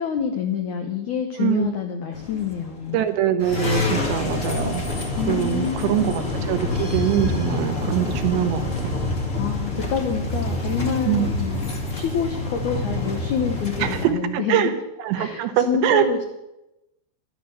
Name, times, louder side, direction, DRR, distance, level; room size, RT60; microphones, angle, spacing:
voice 1, 0.0-3.0 5.2-6.1 9.3-14.7 15.2-16.2, left 7 dB, 80° left, 5 dB, 1.7 m, -27 dB
sound 1, 2.1-2.9 3.4-14.0, left 2 dB, 65° left, 0.7 m, -27 dB
voice 2, 2.9-4.8 5.3-8.7 11.1-11.3 13.8-14.7 15.0-16.2, right 11 dB, 80° right, 7 dB, 3.2 m, -23 dB
12.5 x 11.5 x 6.9 m, 0.92 s
omnidirectional pair, 5.1 m